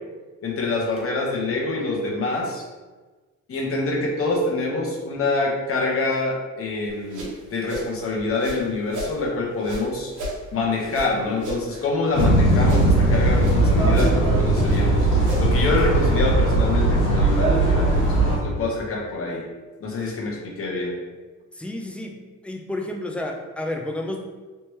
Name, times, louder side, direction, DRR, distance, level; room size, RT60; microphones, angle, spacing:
voice 1, 0.4-2.6 3.5-10.1 10.5-15.1 15.4-19.4 19.8-21.0, left 3 dB, 45° left, 0 dB, 0.9 m, -26 dB
sound 1, 6.9-9.2 9.6-12.3 12.6-13.6 13.9-15.7, equal, 80° right, 1.1 m, -34 dB
sound 2, 12.1-18.4, right 2 dB, 75° left, 1.4 m, -19 dB
voice 2, 21.5-22.2 22.4-24.2, left 1 dB, 5° left, 2 dB, 0.5 m, -30 dB
3.3 x 2.9 x 3.1 m, 1.3 s
cardioid pair, 90°, 30 cm